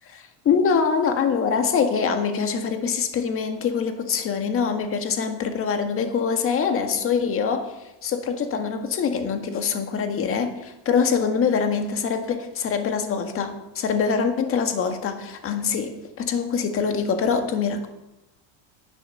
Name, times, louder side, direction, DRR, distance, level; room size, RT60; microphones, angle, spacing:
voice 1, 0.1-7.7 8.0-17.9, left 6 dB, 35° left, 6 dB, 1.8 m, -24 dB
11.0 x 10.5 x 6.6 m, 0.92 s
cardioid pair, 135°, 37 cm